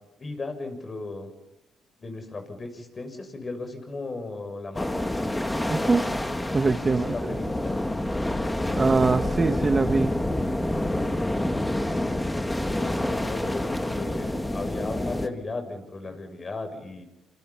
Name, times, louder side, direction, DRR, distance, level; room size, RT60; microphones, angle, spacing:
voice 1, 0.2-1.3 2.0-5.3 6.6-7.8 12.7-17.1, left 3 dB, 30° left, 6 dB, 6.9 m, -36 dB
sound 1, 4.7-15.3, left 1 dB, 10° left, 2.2 m, -27 dB
voice 2, 5.7-6.0 6.5-7.4 8.8-10.1, right 4 dB, 30° right, 8 dB, 1.3 m, -23 dB
28.5 x 27.5 x 5.8 m, 0.94 s
cardioid pair, 90°, 0 cm